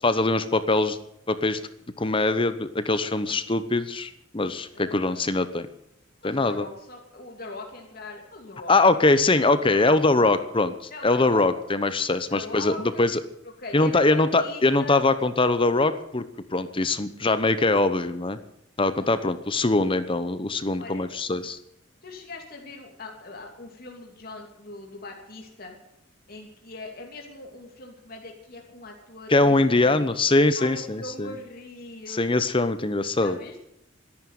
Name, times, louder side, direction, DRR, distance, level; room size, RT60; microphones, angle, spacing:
voice 1, 0.0-1.0 1.3-1.6 2.0-5.7 6.2-6.7 8.7-10.7 11.0-13.2 13.7-16.3 16.5-18.4 18.8-21.6 29.3-31.3 32.1-33.4, left 2 dB, 25° left, 12 dB, 0.9 m, -22 dB
voice 2, 4.7-5.2 6.2-10.0 10.3-10.4 10.9-11.5 12.3-13.0 13.6-15.0 19.0-19.2 20.8-21.1 22.0-25.8 26.3-30.1 30.6-32.3 33.2-33.6, left 2 dB, 50° left, 1 dB, 2.8 m, -41 dB
13.5 x 11.0 x 9.3 m, 0.78 s
head